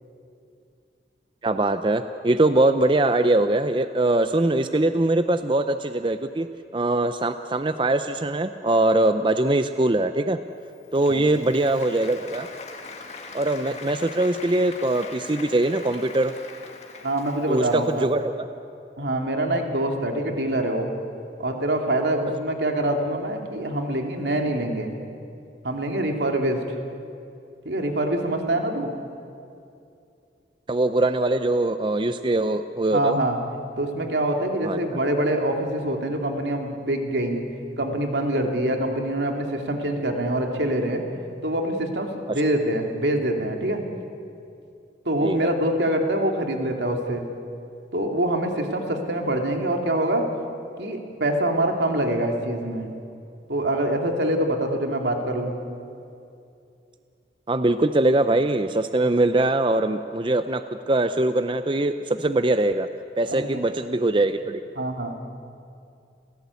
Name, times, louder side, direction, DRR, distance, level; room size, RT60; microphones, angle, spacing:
voice 1, 1.4-6.5 6.7-10.4 10.9-12.5 13.3-16.3 17.5-18.4 30.7-33.2 34.6-34.8 42.3-42.4 45.2-45.5 57.5-62.9 63.2-64.6, right 2 dB, 30° right, 10 dB, 0.5 m, -22 dB
Applause, 10.6-18.2, left 4 dB, 40° left, 2.0 m, -42 dB
voice 2, 17.0-18.1 19.0-20.9 21.4-24.9 25.6-26.8 27.6-28.9 32.9-33.4 33.7-37.4 37.8-41.0 41.4-43.8 45.1-47.2 47.9-50.2 50.8-52.9 53.5-55.6 63.3-63.6 64.8-65.1, right 1 dB, 80° right, 3 dB, 2.6 m, -25 dB
29.5 x 16.0 x 8.4 m, 2.5 s
head